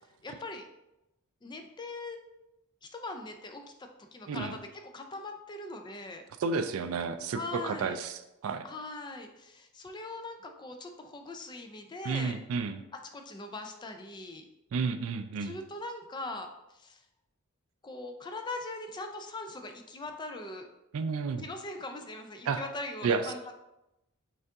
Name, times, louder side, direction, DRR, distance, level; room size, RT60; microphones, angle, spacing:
voice 1, 0.2-0.7 1.4-2.2 2.8-4.6 4.9-6.2 7.3-8.0 8.6-12.4 13.1-14.4 15.4-17.0 17.8-20.7 21.4-23.6, left 2 dB, 20° left, 5 dB, 0.4 m, -41 dB
voice 2, 6.4-8.7 12.0-12.8 14.7-15.6 20.9-21.5 22.5-22.6 23.0-23.2, right 5 dB, 70° right, 9 dB, 0.3 m, -31 dB
5.3 x 2.5 x 3.5 m, 0.92 s
head